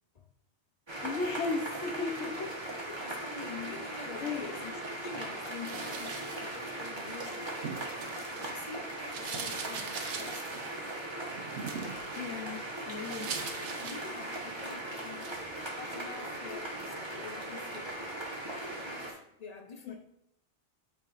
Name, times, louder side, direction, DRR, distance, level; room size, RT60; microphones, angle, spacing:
sound 1, 0.9-19.1, right 1 dB, 25° right, 1.1 m, -39 dB
voice 1, 1.0-2.5 4.2-4.5 12.1-13.3 19.8-20.0, left 4 dB, 85° left, 1.2 m, -35 dB
voice 2, 2.9-4.8 5.0-7.5 8.5-10.5 12.7-13.4 13.8-15.4 15.8-18.0 18.7-20.0, left 5 dB, 40° left, 0.7 m, -46 dB
sound 2, 5.5-8.7 9.0-14.7 15.1-15.5, right 5 dB, 85° right, 1.1 m, -42 dB
8.4 x 4.7 x 2.5 m
omnidirectional pair, 1.2 m